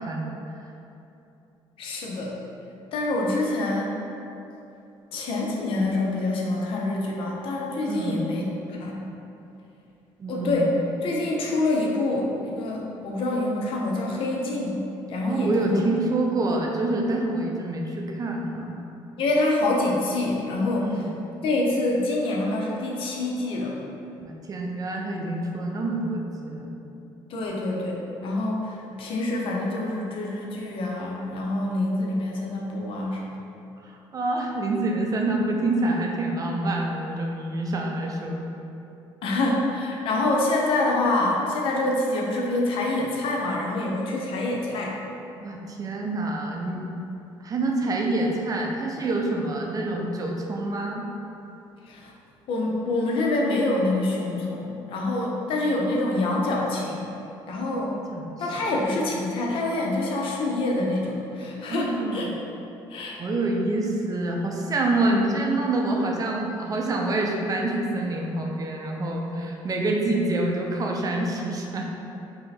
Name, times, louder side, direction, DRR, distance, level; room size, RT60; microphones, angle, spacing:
voice 1, 1.8-2.3 2.9-3.9 5.1-8.4 8.8-9.0 10.3-10.7 11.0-15.8 19.2-20.9 21.4-23.7 27.3-33.3 39.2-45.0 51.9-52.1 52.5-57.2 57.5-58.0 58.4-62.3 62.9-63.2, left 2 dB, 65° left, -2 dB, 0.7 m, -26 dB
voice 2, 7.9-8.2 10.2-10.6 15.2-18.8 20.8-21.1 24.2-26.7 33.8-38.4 45.4-46.8 47.4-51.1 58.1-58.3 61.7-62.3 63.2-71.9, right 2 dB, 40° right, 0 dB, 0.5 m, -27 dB
3.3 x 2.8 x 4.0 m, 2.8 s
cardioid pair, 90°, 10 cm